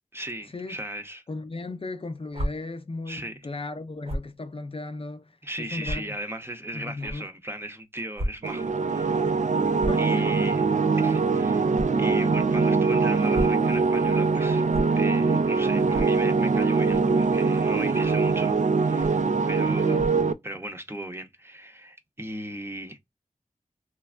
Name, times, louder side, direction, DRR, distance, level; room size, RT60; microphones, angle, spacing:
voice 1, 0.1-1.2 3.1-3.4 5.4-9.3 10.0-10.6 11.0-11.7 12.0-14.6 14.9-20.1 20.4-23.0, right 1 dB, 20° right, 0.7 m, -37 dB
voice 2, 1.3-6.2 6.7-7.3 9.8-10.3 19.8-20.2, left 3 dB, 45° left, 0.5 m, -36 dB
sound 1, 2.3-2.5 4.0-4.3 5.0-5.1 5.8-6.0 7.0-7.1 8.1-8.3 8.6-8.8 9.7-10.0 11.7-11.9 13.1-13.6 14.7-14.8 15.9-16.1 16.9-17.1 18.0-18.2 19.0-19.2 19.9-20.2, equal, 50° right, 0.8 m, -31 dB
sound 2, 8.4-20.3, right 4 dB, 65° right, 0.4 m, -23 dB
3.2 x 2.1 x 2.3 m
wide cardioid pair, 50°, 13 cm